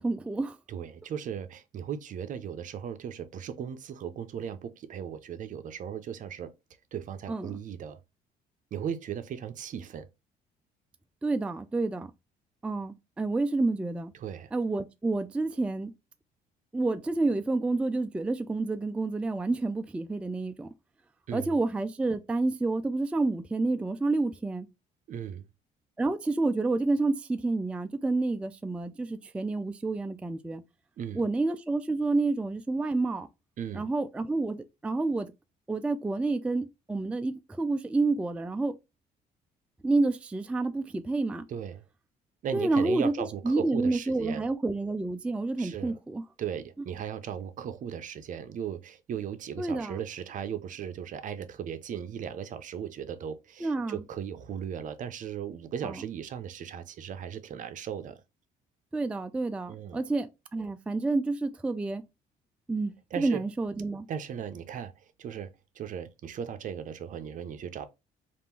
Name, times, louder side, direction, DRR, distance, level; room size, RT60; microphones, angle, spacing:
voice 1, 0.0-0.6 7.3-7.5 11.2-12.1 12.6-14.1 14.5-15.9 16.7-20.7 21.3-24.7 26.0-30.6 31.1-33.3 33.7-35.3 35.7-38.7 39.8-41.4 42.5-43.1 43.4-46.2 49.6-50.0 53.6-54.0 55.8-55.9 58.9-62.0 62.7-64.1, right 3 dB, 5° right, 0.3 m, -29 dB
voice 2, 0.7-6.5 6.9-8.0 8.7-10.1 14.1-14.5 21.3-21.6 25.1-25.5 31.0-31.3 33.6-33.9 41.5-41.8 42.4-44.5 45.6-46.0 46.4-58.2 59.7-60.0 63.1-63.4 64.1-65.5 65.7-67.9, right 8 dB, 50° right, 0.6 m, -37 dB
3.6 x 2.5 x 4.4 m
cardioid pair, 110°, 17 cm